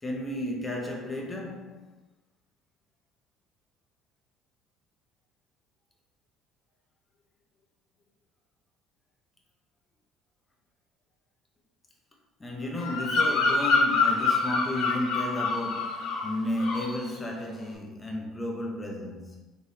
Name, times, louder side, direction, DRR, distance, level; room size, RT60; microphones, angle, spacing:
voice 1, 0.0-1.9 12.4-19.4, left 1 dB, 15° left, 0 dB, 0.8 m, -33 dB
Bird vocalization bird call bird song, 12.8-16.3 16.6-17.0, left 4 dB, 75° left, 1.4 m, -26 dB
3.7 x 3.1 x 2.7 m, 1.1 s
supercardioid pair, 95°, 0 cm